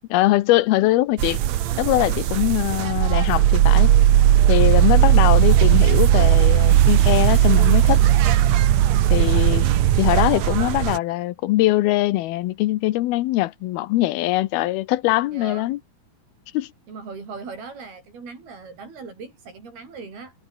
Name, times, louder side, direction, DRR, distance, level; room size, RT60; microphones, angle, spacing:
voice 1, 0.1-1.4 1.8-3.9 4.5-8.0 9.1-9.7 10.0-15.8 16.5-16.7, left 17 dB, 85° left, 2.8 m, -22 dB
sound 1, 1.2-11.0, right 12 dB, 65° right, 2.0 m, -17 dB
voice 2, 9.1-9.4 15.3-15.7 16.9-20.3, right 4 dB, 85° right, 9.2 m, -39 dB
omnidirectional pair, 4.4 m